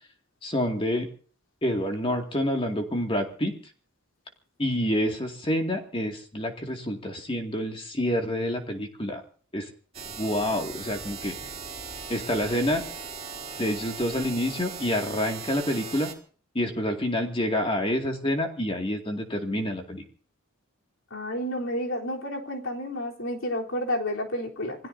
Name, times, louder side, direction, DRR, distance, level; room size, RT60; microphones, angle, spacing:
voice 1, 0.4-1.1 1.6-3.5 4.6-9.2 9.5-9.7 10.2-11.4 12.1-12.8 13.6-16.1 16.5-20.0, left 1 dB, 25° left, 3 dB, 2.3 m, -28 dB
sound 1, 9.9-16.1, right 5 dB, 30° right, 3.8 m, -39 dB
voice 2, 21.1-24.8, left 1 dB, 65° left, -1 dB, 3.7 m, -30 dB
27.5 x 18.0 x 2.8 m, 0.43 s
head